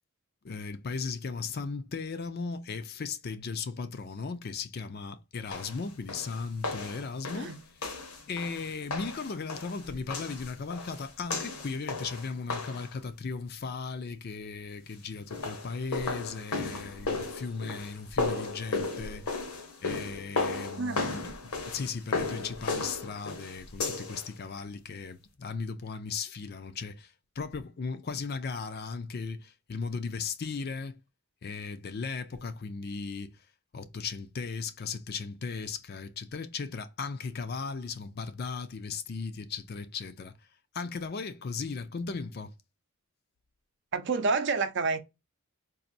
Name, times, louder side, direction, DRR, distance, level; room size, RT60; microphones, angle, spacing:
voice 1, 0.4-7.5 8.3-19.3 19.8-31.0 31.4-33.4 33.7-40.3 40.7-42.5, left 4 dB, 45° left, 0.4 m, -37 dB
sound 1, 5.5-12.9 15.1-24.3, left 3 dB, 80° left, 1.1 m, -35 dB
voice 2, 20.8-21.2 43.9-45.0, right 4 dB, 50° right, 0.5 m, -29 dB
4.1 x 2.5 x 2.6 m
head